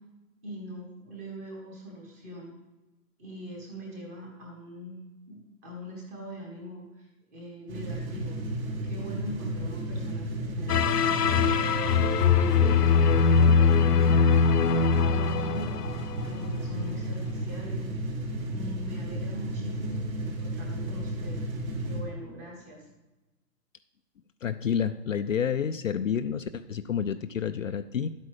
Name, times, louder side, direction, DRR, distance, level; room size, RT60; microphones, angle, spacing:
voice 1, 0.4-2.5 3.2-8.4 8.8-14.5 14.7-17.9 18.4-21.4 21.8-22.9, equal, 10° right, -1 dB, 1.0 m, -42 dB
sound 1, 7.7-22.0, right 1 dB, 60° right, 3.1 m, -33 dB
sound 2, 10.7-16.5, left 5 dB, 75° left, 1.0 m, -22 dB
voice 2, 24.4-28.1, left 8 dB, 55° left, 10 dB, 0.5 m, -29 dB
11.0 x 8.5 x 4.8 m, 1.1 s
hypercardioid pair, 170°, 47 cm